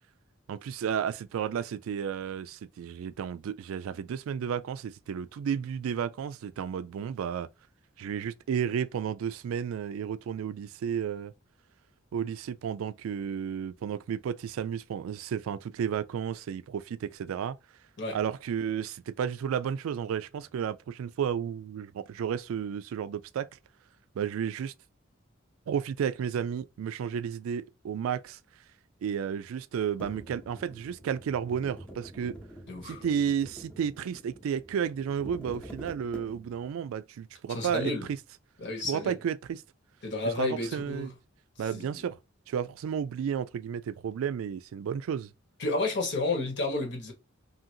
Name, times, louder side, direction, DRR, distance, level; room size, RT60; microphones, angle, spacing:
voice 1, 0.5-7.5 8.0-11.3 12.1-17.6 18.1-23.5 24.2-24.7 25.7-28.4 29.0-32.4 32.8-38.2 38.8-39.6 40.3-41.1 41.6-42.2 42.5-45.3, right 8 dB, 85° right, 0.3 m, -32 dB
sound 1, 30.0-36.7, right 1 dB, 5° left, 0.7 m, -46 dB
voice 2, 32.7-33.0 37.5-38.1 38.6-39.2 40.0-41.1 41.7-42.0 45.6-47.1, left 2 dB, 60° left, 1.3 m, -31 dB
2.7 x 2.6 x 2.7 m
head